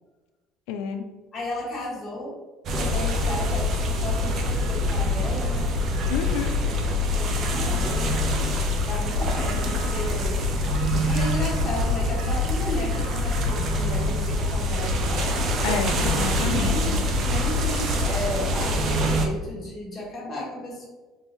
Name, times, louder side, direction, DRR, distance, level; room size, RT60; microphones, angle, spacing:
voice 1, 0.7-1.1 6.1-6.5 15.6-16.9, left 6 dB, 90° left, 5 dB, 0.3 m, -29 dB
voice 2, 1.3-2.3 2.7-5.7 7.1-8.2 8.8-10.4 11.0-15.3 16.6-17.0 17.3-20.9, left 1 dB, 20° left, -6 dB, 1.4 m, -34 dB
sound 1, 2.7-19.3, left 1 dB, 35° right, 0.5 m, -24 dB
4.6 x 2.6 x 3.0 m, 1.2 s
cardioid pair, 170°, 0 cm